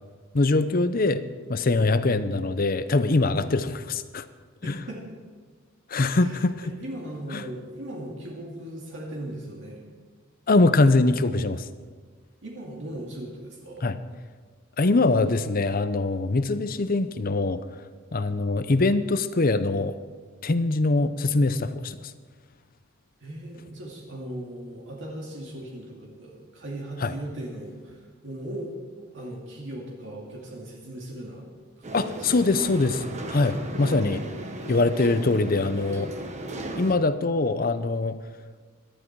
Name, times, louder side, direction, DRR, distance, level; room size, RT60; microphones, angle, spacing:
voice 1, 0.3-1.2 1.5-4.3 4.7-4.8 5.9-6.6 7.3-7.4 10.5-11.6 13.8-14.0 14.8-17.6 18.1-20.0 20.4-22.0 27.0-27.1 31.9-33.0 33.3-34.2 34.7-36.1 36.8-38.2, left 2 dB, 45° left, 13 dB, 0.7 m, -23 dB
voice 2, 4.6-5.0 6.1-9.8 12.4-13.9 23.2-31.5 31.8-31.9 32.2-32.8 33.9-34.7, right 1 dB, 60° right, -2 dB, 2.5 m, -38 dB
sound 1, 31.8-36.9, right 1 dB, 35° right, 1.3 m, -36 dB
18.0 x 12.5 x 4.7 m, 1.5 s
head